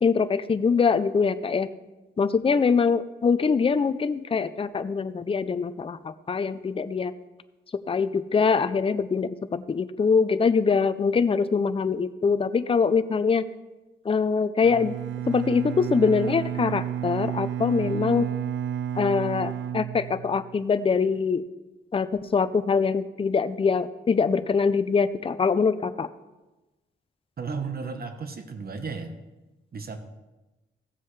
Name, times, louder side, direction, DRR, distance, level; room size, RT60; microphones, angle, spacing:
voice 1, 0.0-1.7 2.2-7.1 7.7-13.4 14.0-14.9 15.3-18.3 18.9-21.4 21.9-26.1, left 5 dB, 30° left, 12 dB, 0.5 m, -23 dB
Bowed string instrument, 14.6-20.7, right 10 dB, 70° right, 0.5 m, -31 dB
voice 2, 27.4-29.2 29.7-30.0, right 5 dB, 50° right, 7 dB, 1.0 m, -34 dB
15.0 x 7.5 x 3.2 m, 1.1 s
cardioid pair, 80°, 20 cm